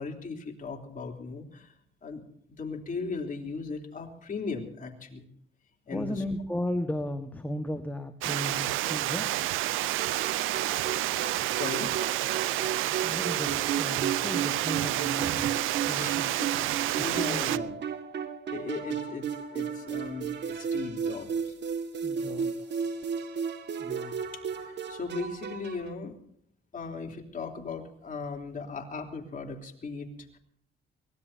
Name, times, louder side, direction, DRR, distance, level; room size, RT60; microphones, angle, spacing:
voice 1, 0.0-1.7 2.0-2.2 2.5-5.3 5.9-6.2 11.5-11.9 16.0-16.5 17.0-17.8 18.5-21.6 24.2-26.2 26.7-30.4, left 4 dB, 40° left, 2 dB, 3.6 m, -38 dB
voice 2, 5.9-9.4 13.0-15.5 15.8-16.3 17.0-17.5 21.9-22.7 23.8-24.1, left 1 dB, 10° left, 6 dB, 1.6 m, -35 dB
Water, 8.2-17.6, right 15 dB, 90° right, 0.6 m, -29 dB
sound 1, 10.0-25.9, right 7 dB, 60° right, 2.0 m, -34 dB
24.0 x 19.5 x 2.8 m, 0.69 s
cardioid pair, 90°, 20 cm